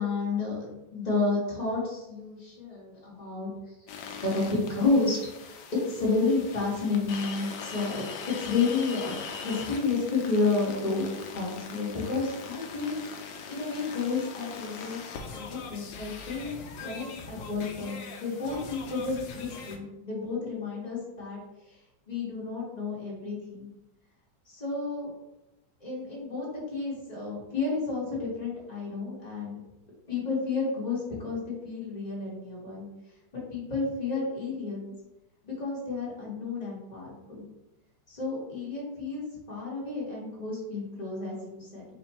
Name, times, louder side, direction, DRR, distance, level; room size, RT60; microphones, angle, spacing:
voice 1, 0.0-3.5 4.2-5.2 5.4-8.1 8.4-11.1 11.3-15.0 15.3-16.6 16.8-21.4 22.1-23.7 24.5-25.1 25.8-29.6 30.1-32.9 33.3-34.8 35.4-37.4 38.1-41.8, left 3 dB, 20° left, -6 dB, 1.3 m, -31 dB
sound 1, 3.9-19.8, left 5 dB, 70° left, 1.3 m, -41 dB
4.5 x 2.8 x 4.1 m, 0.94 s
omnidirectional pair, 2.3 m